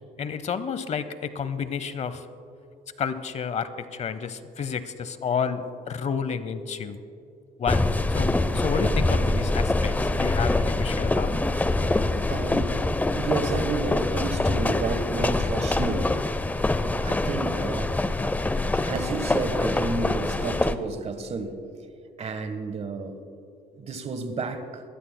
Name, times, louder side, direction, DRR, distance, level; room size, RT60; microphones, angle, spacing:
voice 1, 0.2-2.2 3.0-7.0 7.6-11.3, left 6 dB, 40° left, 13 dB, 0.7 m, -30 dB
sound 1, 7.7-20.8, left 2 dB, 10° left, 0.5 m, -25 dB
voice 2, 12.3-12.8 13.1-16.1 17.0-17.9 18.8-21.6 22.2-23.2 23.7-24.8, right 3 dB, 40° right, 9 dB, 1.3 m, -31 dB
22.0 x 19.0 x 2.2 m, 2.6 s
cardioid pair, 110°, 17 cm